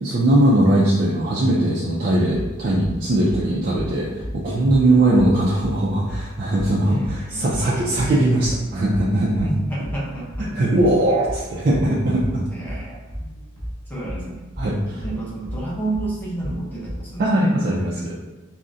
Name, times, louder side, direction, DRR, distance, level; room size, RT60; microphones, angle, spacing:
voice 1, 0.0-9.5 10.5-12.5 14.6-14.7 17.2-18.1, right 1 dB, 40° right, -6 dB, 0.3 m, -20 dB
sound 1, 2.3-17.1, equal, 35° left, 0.9 m, -33 dB
voice 2, 6.9-7.7 9.4-10.5 12.5-13.3 13.9-14.8 15.0-17.5, right 2 dB, 10° left, -6 dB, 0.6 m, -31 dB
3.6 x 2.1 x 2.5 m, 1.1 s
head